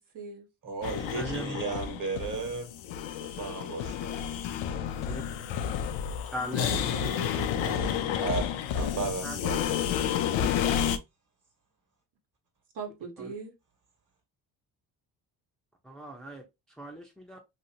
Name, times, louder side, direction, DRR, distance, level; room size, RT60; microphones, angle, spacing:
voice 1, 0.0-0.5 6.6-8.3 12.7-13.5, right 5 dB, 60° right, 1.3 m, -41 dB
voice 2, 0.6-2.7 3.2-4.2 7.6-8.4 8.8-10.2, right 4 dB, 45° right, 1.4 m, -35 dB
sound 1, 0.8-11.0, left 9 dB, 85° left, 0.6 m, -30 dB
voice 3, 1.1-1.6 5.1-5.2 6.3-6.9 9.2-9.4 13.2-13.3 15.8-17.4, equal, ahead, 0.8 m, -39 dB
2.9 x 2.7 x 2.7 m
supercardioid pair, 75°, 45 cm